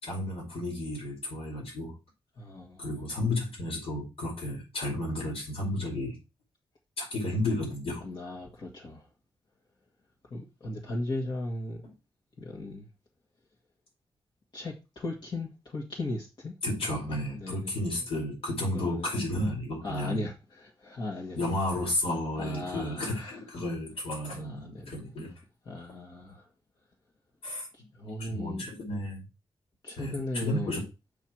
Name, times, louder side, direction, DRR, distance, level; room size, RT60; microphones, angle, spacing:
voice 1, 0.0-2.0 2.8-6.2 7.0-8.1 16.6-20.2 21.4-25.3 27.4-27.7 28.2-29.3 30.0-30.8, left 1 dB, 85° left, 5.3 m, -32 dB
voice 2, 2.4-3.0 8.0-9.1 10.3-11.8 12.4-12.9 14.5-16.5 16.9-17.7 18.7-19.1 19.8-21.4 22.4-23.4 24.3-25.0 25.7-26.5 27.7-28.7 29.8-30.8, left 2 dB, 50° left, 1.9 m, -37 dB
7.1 x 5.7 x 4.6 m
wide cardioid pair, 105°, 10 cm